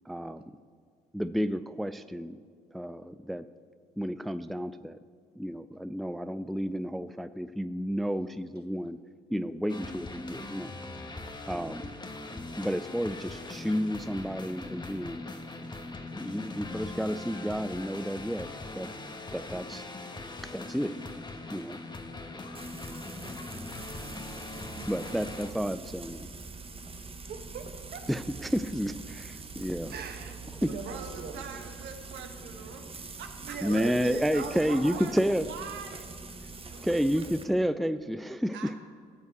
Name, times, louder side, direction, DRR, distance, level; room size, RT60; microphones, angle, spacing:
voice 1, 0.1-0.4 1.1-2.4 2.7-3.5 4.0-5.0 5.4-9.0 9.3-10.7 11.5-11.9 12.6-15.2 16.1-18.9 19.3-19.9 20.5-20.9 21.5-21.8 24.9-26.3 28.1-29.9 30.6-30.7 33.6-35.5 36.8-38.7, equal, ahead, 13 dB, 0.4 m, -31 dB
sound 1, 9.7-25.5, left 2 dB, 25° left, 1.3 m, -41 dB
Crow, 20.5-20.9 21.5-21.6 22.4-25.8, left 6 dB, 85° left, 1.6 m, -56 dB
Frying (food), 22.5-37.4, right 4 dB, 30° right, 1.2 m, -44 dB
voice 2, 24.7-25.2 27.0-28.1 29.9-31.4 33.4-35.0 36.7-37.1, right 5 dB, 55° right, 6 dB, 1.5 m, -41 dB
voice 3, 30.7-33.5 34.3-36.1 36.7-37.2 38.5-38.8, right 6 dB, 75° right, 5 dB, 1.4 m, -44 dB
14.0 x 5.6 x 7.9 m, 2.1 s
supercardioid pair, 65°, 19 cm